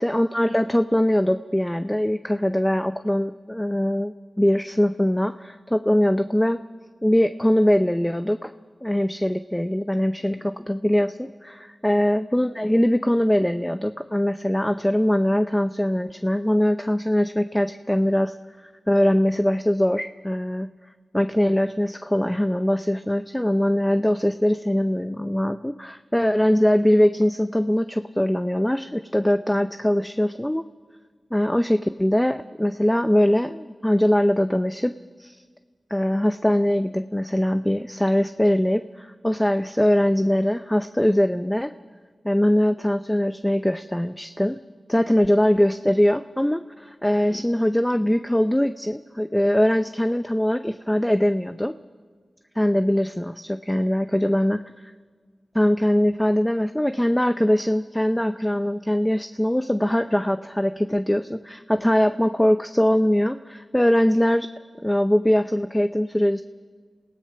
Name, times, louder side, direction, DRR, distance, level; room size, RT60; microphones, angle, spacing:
voice 1, 0.0-6.6 7.0-8.5 8.8-18.4 18.9-20.7 21.1-30.7 31.3-34.9 35.2-35.4 35.9-41.7 42.2-44.6 44.9-51.8 52.6-54.6 55.5-64.5 64.8-66.4, equal, 10° left, 10 dB, 0.6 m, -22 dB
27.0 x 16.5 x 5.8 m, 1.5 s
cardioid pair, 40°, 0 cm